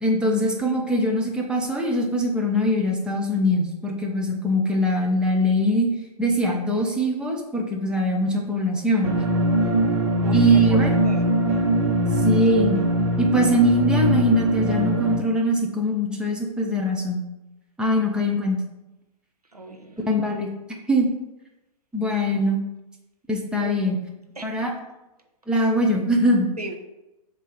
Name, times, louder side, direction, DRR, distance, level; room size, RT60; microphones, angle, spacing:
voice 1, 0.0-5.9 6.2-9.2 10.3-11.0 12.2-12.8 13.2-17.2 17.8-18.6 20.1-20.5 20.9-21.1 21.9-22.6 23.3-24.0 24.4-24.7 25.5-26.5, equal, 5° right, 0 dB, 0.8 m, -22 dB
sound 1, 9.0-15.2, equal, 45° right, 1.5 m, -21 dB
voice 2, 10.2-11.4 19.5-20.0 23.6-23.8 24.4-24.7 26.6-26.8, right 2 dB, 90° right, 3 dB, 0.9 m, -36 dB
7.3 x 3.0 x 5.2 m, 0.95 s
figure-of-eight pair, 115°, 19 cm